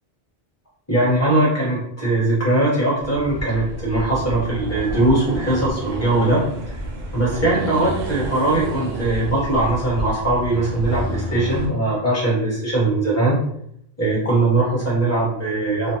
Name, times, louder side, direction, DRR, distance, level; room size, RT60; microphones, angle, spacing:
voice 1, 0.9-6.4 7.1-13.4 14.0-15.9, right 2 dB, 15° left, -6 dB, 1.1 m, -20 dB
Accelerating revving vroom, 3.0-11.7, right 1 dB, 70° right, 0.8 m, -30 dB
2.5 x 2.0 x 2.8 m, 0.72 s
omnidirectional pair, 1.1 m